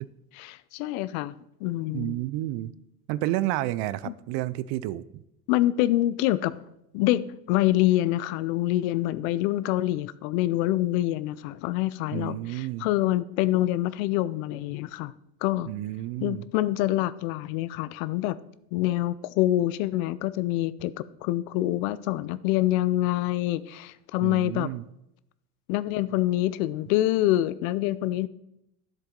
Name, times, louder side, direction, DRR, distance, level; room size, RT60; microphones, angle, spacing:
voice 1, 0.4-1.3 1.6-2.2 4.1-4.2 5.5-6.5 6.9-15.1 15.4-15.7 16.2-18.4 18.7-20.9 21.2-24.7 25.7-28.3, left 15 dB, 70° left, 17 dB, 0.6 m, -26 dB
voice 2, 1.9-2.7 3.1-5.0 12.1-12.9 15.7-16.5 24.2-24.9, right 15 dB, 60° right, 18 dB, 0.6 m, -30 dB
10.5 x 7.6 x 3.9 m, 0.82 s
supercardioid pair, 95°, 43 cm